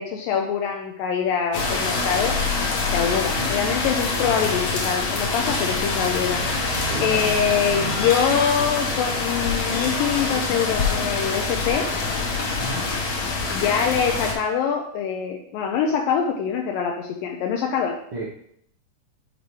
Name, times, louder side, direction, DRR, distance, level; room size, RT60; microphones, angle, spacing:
voice 1, 0.0-2.3 2.9-6.4 7.0-11.8 13.5-18.0, left 7 dB, 80° left, 1 dB, 2.2 m, -24 dB
sound 1, 1.5-14.3, left 3 dB, 65° left, 1.8 m, -25 dB
voice 2, 6.9-7.3 12.6-12.9 18.1-18.3, right 1 dB, 75° right, -6 dB, 1.2 m, -32 dB
10.0 x 4.2 x 3.2 m, 0.70 s
omnidirectional pair, 4.4 m